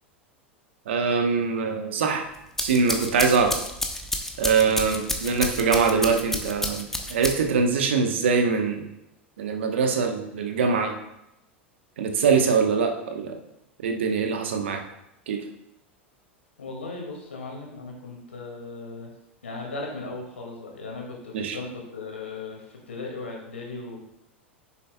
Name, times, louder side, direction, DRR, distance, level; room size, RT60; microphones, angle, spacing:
voice 1, 0.9-2.3 2.6-3.5 4.4-8.9 9.4-10.9 12.0-13.4 13.8-14.8 15.3-15.4 21.3-21.6, right 5 dB, 70° right, 4 dB, 1.1 m, -23 dB
sound 1, 2.3-7.7, left 1 dB, 5° left, 0.9 m, -30 dB
voice 2, 16.6-19.1 19.4-24.0, left 3 dB, 80° left, -1 dB, 2.1 m, -37 dB
9.8 x 6.9 x 2.3 m, 0.85 s
figure-of-eight pair, 90°, 7 cm